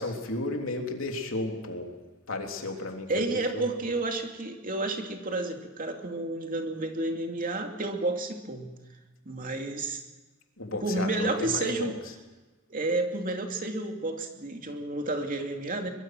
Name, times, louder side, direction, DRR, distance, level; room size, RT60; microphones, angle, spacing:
voice 1, 0.0-1.9 2.3-3.7 10.6-11.9, left 2 dB, 70° left, 2 dB, 3.5 m, -33 dB
voice 2, 3.1-8.7 9.3-10.0 10.8-12.0 12.7-15.9, right 2 dB, 40° right, 4 dB, 2.6 m, -31 dB
23.5 x 22.0 x 6.2 m, 1.2 s
head